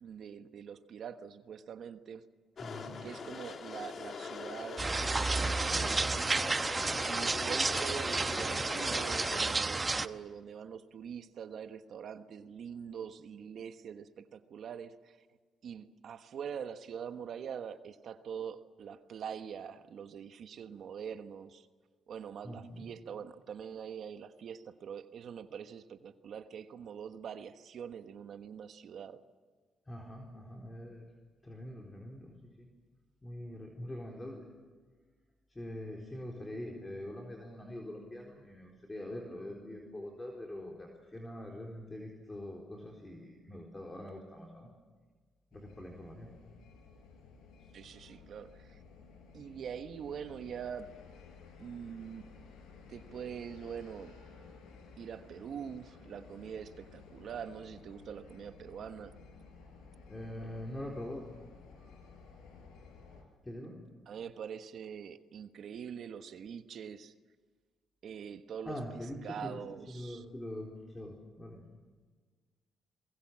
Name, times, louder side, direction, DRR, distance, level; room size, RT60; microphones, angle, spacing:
voice 1, 0.0-2.2 3.0-4.8 5.3-6.2 7.0-15.2 15.6-21.7 22.1-29.2 47.7-48.8 49.3-50.9 51.6-52.3 52.9-54.1 55.0-59.1 64.1-67.1 68.0-70.2, right 7 dB, 65° right, 9 dB, 1.3 m, -44 dB
sound 1, 2.6-9.5, left 5 dB, 50° left, 2.1 m, -42 dB
voice 2, 2.6-3.0 22.4-22.9 29.9-31.0 31.4-32.7 33.2-34.4 35.5-44.7 45.5-46.3 60.1-61.3 63.5-63.8 68.7-69.6 69.9-71.6, left 1 dB, 15° left, 0 dB, 4.1 m, -44 dB
sound 2, 4.8-10.1, right 3 dB, 25° right, 0.9 m, -31 dB
sound 3, 45.5-63.2, left 5 dB, 85° left, 5.3 m, -55 dB
27.5 x 22.0 x 7.5 m, 1.4 s
cardioid pair, 90°, 0 cm